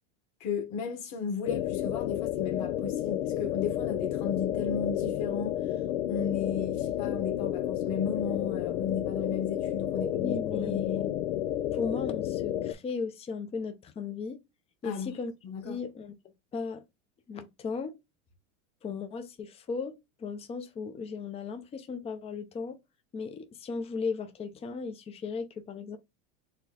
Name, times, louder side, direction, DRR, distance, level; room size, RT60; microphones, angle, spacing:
voice 1, 0.4-5.5 6.1-11.1 14.8-15.1 15.4-15.8, left 6 dB, 45° left, 1.6 m, -34 dB
sound 1, 1.5-12.7, left 12 dB, 80° left, 0.6 m, -31 dB
voice 2, 9.9-11.0 11.7-14.4 14.8-15.3 15.6-16.1 16.5-16.8 17.3-18.0 18.8-22.8 23.1-26.0, left 5 dB, 15° left, 0.6 m, -36 dB
4.3 x 2.2 x 4.1 m
supercardioid pair, 130°, 38 cm